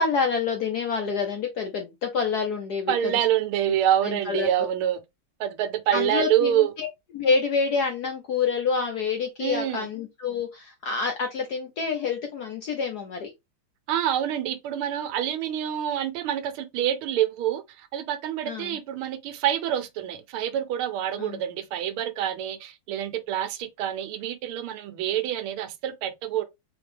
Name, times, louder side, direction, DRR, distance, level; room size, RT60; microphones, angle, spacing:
voice 1, 0.0-3.1 4.0-4.5 5.9-6.9 7.1-13.3 18.5-18.7 21.2-21.4, left 5 dB, 70° left, 0.9 m, -27 dB
voice 2, 2.9-5.0 5.4-6.7 9.4-9.9 13.9-26.4, right 11 dB, 80° right, 1.5 m, -26 dB
3.9 x 3.5 x 3.3 m
omnidirectional pair, 2.4 m